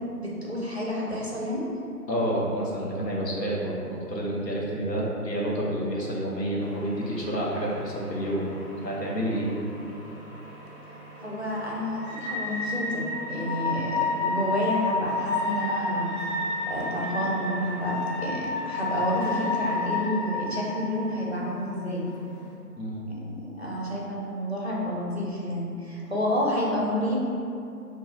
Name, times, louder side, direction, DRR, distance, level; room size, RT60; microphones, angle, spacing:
voice 1, 0.2-1.7 11.2-16.3 16.7-22.1 23.2-27.3, equal, 45° right, -5 dB, 0.4 m, -29 dB
voice 2, 2.1-8.5 8.8-9.5 22.8-23.1, equal, 85° left, -4 dB, 0.9 m, -29 dB
sound 1, 6.6-22.5, left 3 dB, 35° left, 1.3 m, -32 dB
2.4 x 2.3 x 4.0 m, 2.7 s
figure-of-eight pair, 160°, 49 cm